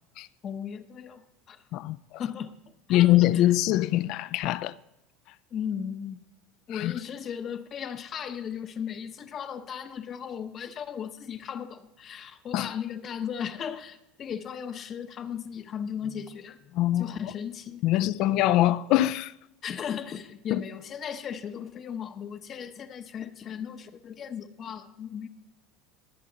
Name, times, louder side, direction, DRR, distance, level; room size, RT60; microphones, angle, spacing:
voice 1, 0.4-1.6 2.2-2.5 2.9-3.4 5.5-6.2 6.7-18.0 19.6-25.3, left 8 dB, 35° left, 0.8 m, -36 dB
voice 2, 1.7-2.2 2.9-4.8 6.7-6.9 12.5-12.7 16.7-17.2 17.8-19.3 20.5-20.6, left 15 dB, 55° left, 0.4 m, -23 dB
20.0 x 7.5 x 3.9 m
supercardioid pair, 120°, 0 cm